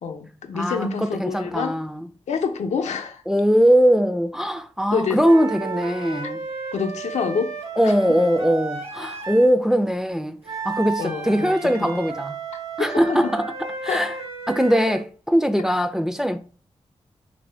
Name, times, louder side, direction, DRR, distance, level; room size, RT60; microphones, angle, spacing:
voice 1, 0.0-1.8 2.3-3.2 4.9-5.2 6.2-6.3 6.7-7.6 7.8-7.9 11.0-11.9 12.8-13.3 13.9-14.0, left 5 dB, 85° left, 0.5 m, -27 dB
voice 2, 0.5-2.1 3.3-6.4 7.8-10.4 10.6-12.3 12.8-14.1 14.5-16.4, equal, 5° right, 0.3 m, -21 dB
sound 1, 5.2-9.5 10.4-15.1, right 4 dB, 55° right, 1.0 m, -33 dB
2.8 x 2.6 x 3.2 m
cardioid pair, 50°, 12 cm